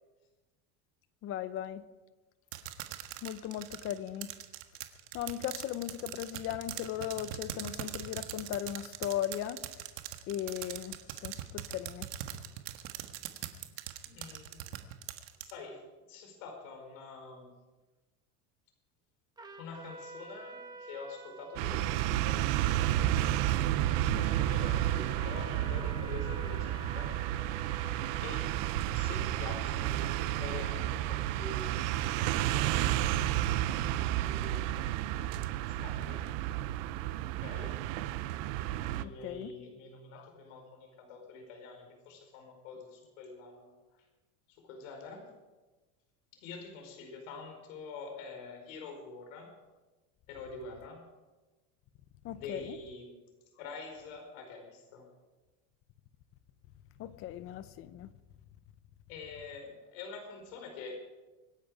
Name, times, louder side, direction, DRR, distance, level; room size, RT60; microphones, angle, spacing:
voice 1, 1.2-1.8 3.2-4.3 5.1-9.6 10.3-12.1 39.0-39.5 40.1-40.3 52.2-52.8 57.0-58.1, left 11 dB, 35° left, 0.7 m, -37 dB
sound 1, 2.5-15.5, right 13 dB, 85° right, 1.6 m, -41 dB
voice 2, 14.0-14.6 15.4-17.5 19.6-22.5 22.8-27.2 28.2-28.6 28.9-32.3 33.7-34.8 35.7-36.5 37.4-37.8 38.9-44.0 44.5-45.3 46.3-49.5 50.3-51.1 52.3-53.2 53.6-55.1 59.1-61.0, left 4 dB, 85° left, 4.8 m, -46 dB
Trumpet, 19.4-28.9, right 2 dB, 10° right, 1.1 m, -49 dB
sound 2, 21.6-39.0, right 13 dB, 60° right, 0.8 m, -31 dB
25.5 x 10.5 x 4.9 m
cardioid pair, 170°, 38 cm